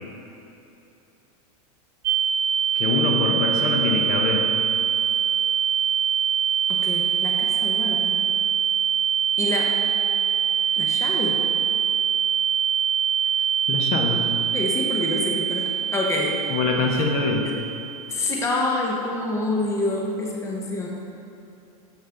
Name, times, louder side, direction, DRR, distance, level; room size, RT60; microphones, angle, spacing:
sound 1, 2.0-18.4, right 8 dB, 70° right, 0.5 m, -24 dB
voice 1, 2.7-4.5 13.7-14.2 16.5-17.5, left 4 dB, 45° left, 2 dB, 0.8 m, -24 dB
voice 2, 6.7-8.2 9.4-9.7 10.7-11.4 14.5-16.4 16.9-17.0 17.4-17.5 18.1-20.9, left 2 dB, 15° left, -1 dB, 0.8 m, -27 dB
7.1 x 5.4 x 3.8 m, 2.8 s
hypercardioid pair, 120°, 20 cm